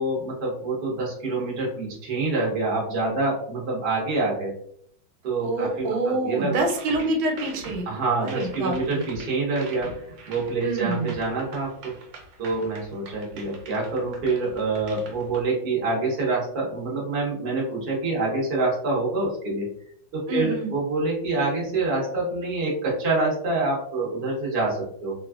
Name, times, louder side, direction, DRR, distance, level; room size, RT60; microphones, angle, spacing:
voice 1, 0.0-4.5 5.2-6.6 7.9-11.9 12.4-19.7 20.1-25.1, right 3 dB, 40° right, -4 dB, 0.9 m, -26 dB
voice 2, 5.4-7.9 8.2-9.0 10.6-11.1 20.3-20.7, right 2 dB, 85° right, 2 dB, 1.5 m, -27 dB
sound 1, 6.5-15.4, right 2 dB, 70° right, 1.3 m, -43 dB
3.3 x 2.4 x 2.3 m, 0.64 s
omnidirectional pair, 2.2 m